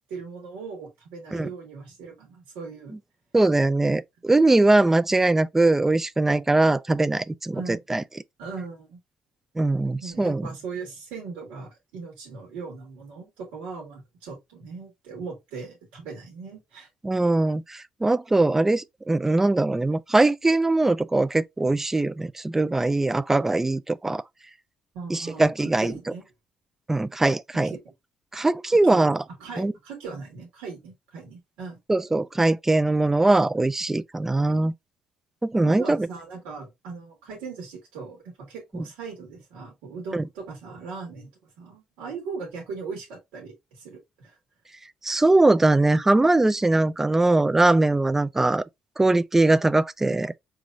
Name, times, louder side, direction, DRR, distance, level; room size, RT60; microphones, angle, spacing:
voice 1, 0.1-3.0 7.5-7.8 8.4-9.0 10.0-16.9 24.9-26.3 27.5-27.9 28.8-29.1 29.4-31.8 35.6-41.3 41.6-44.4, right 4 dB, 90° right, 1.6 m, -39 dB
voice 2, 3.3-8.0 9.6-10.5 17.0-24.2 25.1-25.9 26.9-27.7 28.3-29.2 29.6-29.7 31.9-34.7 35.4-36.1 40.1-40.3 45.0-48.6 49.0-50.3, right 2 dB, 15° right, 0.4 m, -21 dB
4.7 x 3.0 x 2.4 m
supercardioid pair, 75°, 2 cm